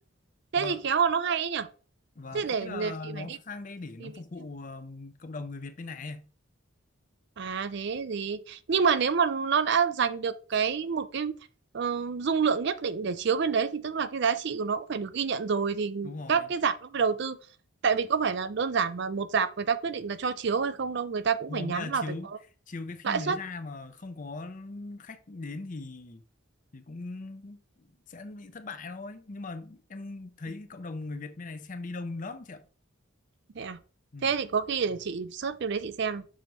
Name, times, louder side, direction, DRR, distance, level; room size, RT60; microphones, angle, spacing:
voice 1, 0.5-1.7 2.3-3.4 4.0-4.1 7.4-11.4 11.7-17.4 17.8-22.0 23.0-23.4 33.6-33.8 34.2-36.2, right 6 dB, 55° right, 0.5 m, -28 dB
voice 2, 2.2-6.3 16.0-16.5 21.5-22.3 22.7-26.2 26.7-32.7 34.1-34.3, left 3 dB, 40° left, 0.6 m, -39 dB
6.2 x 3.0 x 5.2 m
head